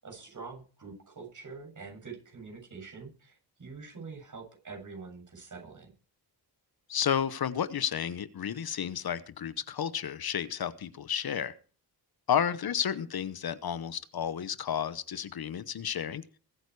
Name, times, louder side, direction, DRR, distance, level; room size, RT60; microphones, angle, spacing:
voice 1, 0.0-5.9, right 4 dB, 50° right, 1 dB, 7.4 m, -45 dB
voice 2, 6.9-11.5 12.3-16.2, left 8 dB, 65° left, 14 dB, 1.0 m, -31 dB
22.0 x 9.1 x 4.8 m, 0.38 s
cardioid pair, 85°, 40 cm